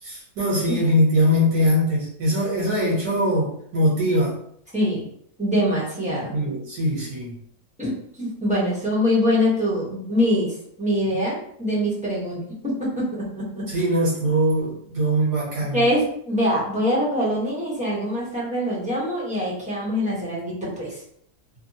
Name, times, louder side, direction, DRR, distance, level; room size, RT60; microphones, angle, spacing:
voice 1, 0.0-4.4 6.3-7.3 13.7-15.8, equal, 70° right, -7 dB, 1.7 m, -22 dB
voice 2, 4.7-5.1 5.4-6.4 7.8-7.9 8.2-13.8 15.7-21.0, equal, 5° right, -8 dB, 0.7 m, -24 dB
3.4 x 2.0 x 2.7 m, 0.67 s
omnidirectional pair, 1.7 m